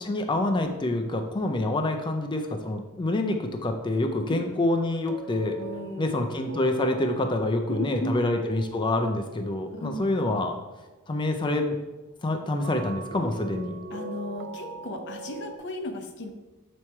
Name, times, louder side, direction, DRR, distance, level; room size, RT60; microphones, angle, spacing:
voice 1, 0.1-5.6 6.0-10.6 11.1-11.8 12.2-13.8, left 2 dB, 20° left, 5 dB, 0.4 m, -27 dB
sound 1, 2.8-3.0 5.1-10.7 12.6-15.6, right 3 dB, 55° right, 0.5 m, -42 dB
voice 2, 5.6-6.2 7.7-8.2 9.7-10.1 13.9-16.3, left 1 dB, 55° left, 5 dB, 0.7 m, -35 dB
7.0 x 3.1 x 4.4 m, 1.1 s
head